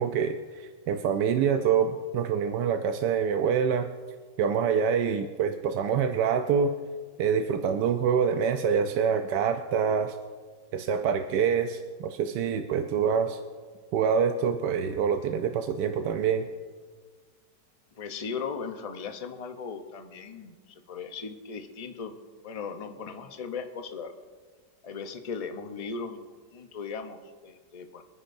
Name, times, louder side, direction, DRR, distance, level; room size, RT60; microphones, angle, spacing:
voice 1, 0.0-3.9 4.4-6.7 7.2-10.2 10.7-13.4 13.9-16.5, right 7 dB, 75° right, 6 dB, 1.2 m, -26 dB
voice 2, 17.9-22.1 22.4-24.1 24.8-26.2 26.5-28.0, left 5 dB, 45° left, 6 dB, 0.4 m, -37 dB
25.5 x 9.9 x 2.6 m, 1.5 s
omnidirectional pair, 1.9 m